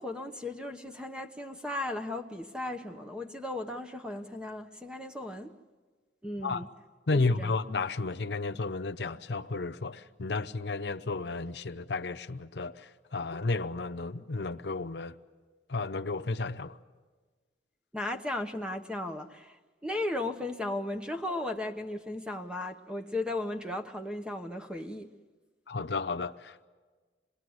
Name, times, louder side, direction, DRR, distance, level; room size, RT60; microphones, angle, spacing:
voice 1, 0.0-5.5 6.2-6.7 7.1-7.5 17.9-25.1, left 1 dB, 5° right, 1.0 m, -36 dB
voice 2, 7.1-15.1 15.7-16.8 25.7-26.7, left 3 dB, 70° left, 0.7 m, -32 dB
27.0 x 20.5 x 7.9 m
head